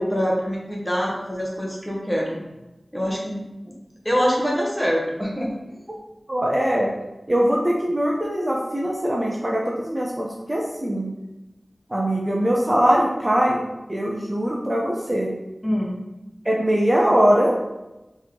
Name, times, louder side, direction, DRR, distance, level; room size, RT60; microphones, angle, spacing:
voice 1, 0.0-2.4 2.9-3.7 4.0-5.5 15.6-16.0, equal, 5° left, -2 dB, 1.2 m, -24 dB
voice 2, 6.3-6.9 7.3-11.1 11.9-13.6 13.9-15.3 16.4-17.5, equal, 25° right, -2 dB, 0.7 m, -21 dB
4.2 x 3.0 x 3.7 m, 1.0 s
wide cardioid pair, 55°, 0 cm